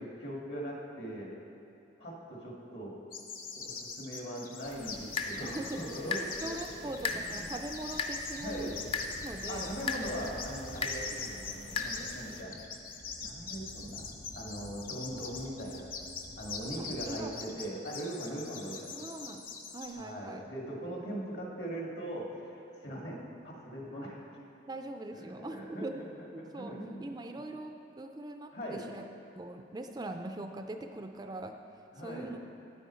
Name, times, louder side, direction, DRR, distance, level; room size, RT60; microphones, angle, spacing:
voice 1, 0.2-1.3 2.0-3.0 3.5-7.5 8.4-8.8 9.5-12.7 13.2-14.0 14.3-15.9 16.4-19.1 20.0-24.2 25.1-27.1 28.5-28.8 31.9-32.3, right 1 dB, 65° left, -2 dB, 1.9 m, -40 dB
sound 1, 3.1-19.9, left 5 dB, 50° left, 0.9 m, -43 dB
sound 2, 4.7-12.4, left 4 dB, 30° left, 0.5 m, -39 dB
voice 2, 5.4-8.8 9.2-9.7 16.8-17.5 18.9-19.5 19.7-20.4 24.7-26.1 26.3-26.7 27.0-29.0 29.3-31.6 32.0-32.4, right 2 dB, 20° right, 6 dB, 0.3 m, -42 dB
sound 3, 7.0-17.3, equal, 80° left, 1.1 m, -51 dB
9.7 x 9.2 x 4.3 m, 2.8 s
head